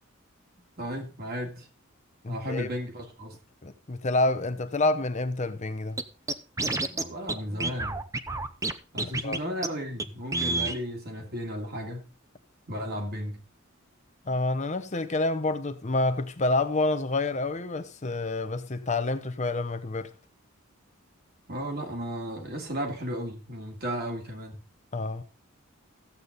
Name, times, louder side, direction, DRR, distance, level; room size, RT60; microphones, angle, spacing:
voice 1, 0.8-1.7 2.3-3.4 6.8-8.0 8.9-12.1 12.7-13.4 21.5-24.6, equal, 50° right, 2.8 m, -34 dB
voice 2, 2.2-2.7 3.6-6.0 9.2-9.4 14.3-20.1 24.9-25.2, left 2 dB, 35° left, 0.8 m, -28 dB
Scratching (performance technique), 6.0-6.1 6.3-7.0 7.3-7.4 7.6-8.7 9.0-9.4 9.6-9.7 10.0-10.1 10.3-10.8, right 2 dB, 15° right, 0.7 m, -28 dB
14.5 x 8.4 x 4.0 m
head